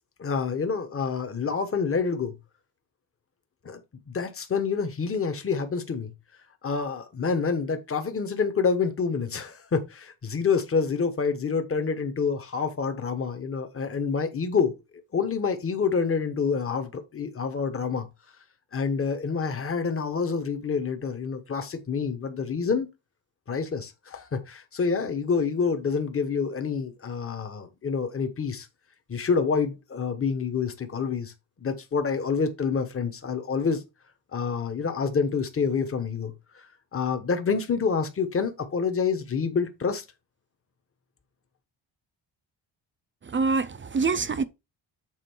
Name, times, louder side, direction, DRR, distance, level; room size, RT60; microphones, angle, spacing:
voice 1, 0.2-2.3 3.6-3.8 4.1-6.1 6.6-14.8 15.1-18.1 18.7-22.9 23.5-28.7 29.1-31.3 31.6-33.8 34.3-40.0, left 5 dB, 30° left, 1.2 m, -27 dB
voice 2, 43.2-44.4, right 4 dB, 25° right, 0.5 m, -25 dB
7.5 x 4.2 x 4.5 m
cardioid pair, 135°, 48 cm